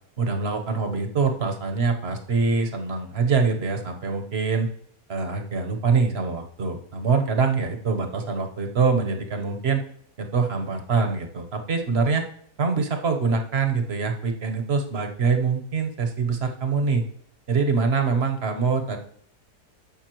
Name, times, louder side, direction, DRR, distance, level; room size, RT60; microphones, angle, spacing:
voice 1, 0.2-4.7 5.1-9.8 10.2-12.2 12.6-17.0 17.5-19.0, right 4 dB, 45° right, 5 dB, 1.1 m, -24 dB
14.5 x 5.5 x 3.0 m, 0.66 s
omnidirectional pair, 1.8 m